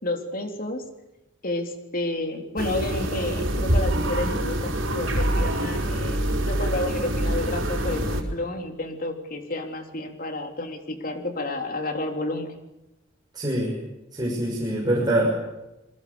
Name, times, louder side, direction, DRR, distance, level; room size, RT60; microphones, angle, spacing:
voice 1, 0.0-0.8 1.4-6.2 6.5-12.5, left 2 dB, 45° left, 5 dB, 3.5 m, -30 dB
sound 1, 2.6-8.2, right 1 dB, 80° right, 4.7 m, -25 dB
voice 2, 13.3-13.7 14.1-15.3, right 1 dB, 20° right, -3 dB, 6.3 m, -24 dB
27.5 x 22.5 x 7.0 m, 0.98 s
head